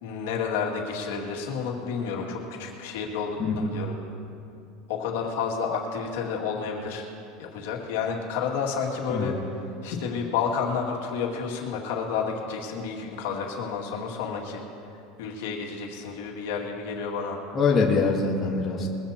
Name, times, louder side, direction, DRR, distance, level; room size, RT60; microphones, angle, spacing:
voice 1, 0.0-3.9 4.9-7.1 7.4-14.6 15.2-17.4, left 6 dB, 80° left, -1 dB, 2.2 m, -30 dB
voice 2, 3.4-3.7 9.1-9.4 17.5-18.9, left 4 dB, 25° left, -2 dB, 1.4 m, -24 dB
22.0 x 15.5 x 2.9 m, 2.8 s
supercardioid pair, 155°, 0 cm